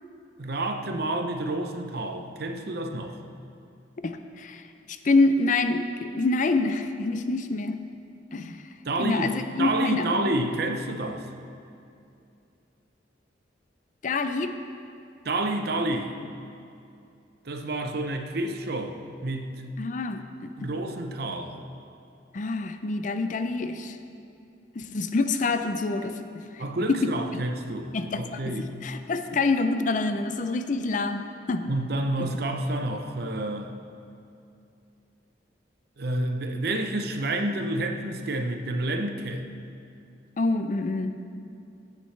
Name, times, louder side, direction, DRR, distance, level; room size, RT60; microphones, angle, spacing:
voice 1, 0.4-3.2 8.8-11.2 15.2-16.1 17.4-19.7 20.6-21.6 26.6-28.7 31.7-33.7 36.0-39.5, right 2 dB, 55° right, 5 dB, 0.7 m, -29 dB
voice 2, 4.0-4.6 4.9-7.8 8.3-8.6 9.0-10.2 14.0-14.6 19.8-20.7 22.3-24.0 24.8-26.6 26.9-27.4 27.9-28.6 28.8-31.7 32.2-32.3 40.4-41.1, left 3 dB, 45° left, 8 dB, 0.5 m, -27 dB
15.5 x 8.5 x 3.3 m, 2.6 s
head